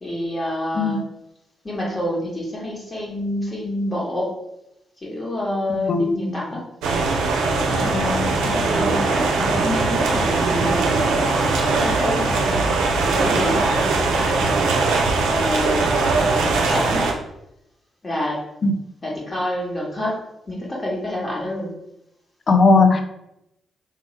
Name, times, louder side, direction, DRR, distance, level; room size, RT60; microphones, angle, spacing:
voice 1, 0.0-1.0 1.6-4.3 5.0-6.6 7.6-12.7 13.0-14.7 15.3-17.1 18.0-18.4 19.0-20.2 20.5-21.7, left 1 dB, 35° left, -3 dB, 1.3 m, -28 dB
voice 2, 5.7-6.1 7.9-8.4 18.6-18.7 22.5-23.0, left 3 dB, 50° left, 7 dB, 0.4 m, -18 dB
sound 1, 6.8-17.1, right 3 dB, 80° right, 0.4 m, -20 dB
3.1 x 2.2 x 3.1 m, 0.84 s
hypercardioid pair, 40°, 0 cm